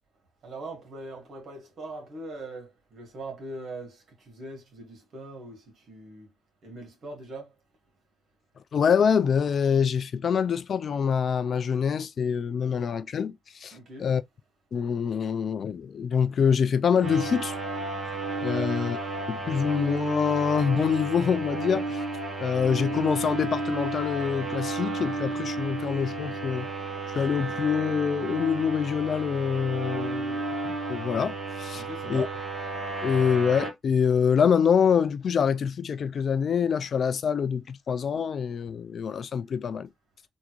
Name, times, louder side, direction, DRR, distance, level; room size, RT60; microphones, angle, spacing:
voice 1, 0.4-6.3 6.6-7.5 13.7-14.1 18.5-18.8 31.7-32.4, right 2 dB, 60° right, 1.8 m, -41 dB
voice 2, 8.7-13.7 14.0-14.2 14.7-17.5 18.4-19.0 19.3-22.0 22.4-26.7 27.1-31.8 32.1-32.3 33.0-39.9, left 7 dB, 50° left, 0.4 m, -25 dB
sound 1, 17.0-33.7, right 3 dB, 35° right, 1.4 m, -32 dB
3.6 x 2.5 x 3.0 m
cardioid pair, 90°, 0 cm